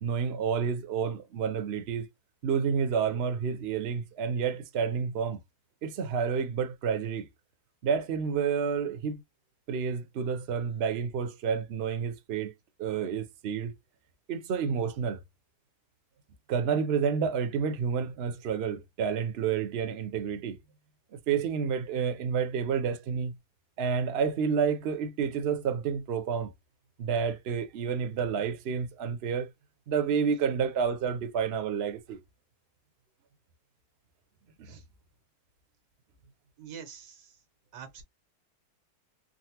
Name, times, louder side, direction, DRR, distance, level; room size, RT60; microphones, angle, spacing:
voice 1, 0.0-2.1 2.4-5.4 5.8-7.3 7.8-9.2 9.7-12.5 12.8-13.7 14.3-15.2 16.5-20.6 21.1-23.3 23.8-26.5 27.0-29.5 29.9-32.2 34.6-34.8, right 6 dB, 55° right, 0.8 m, -29 dB
voice 2, 36.6-37.4 37.7-38.0, right 7 dB, 90° right, 1.5 m, -45 dB
3.8 x 2.1 x 2.8 m
omnidirectional pair, 1.7 m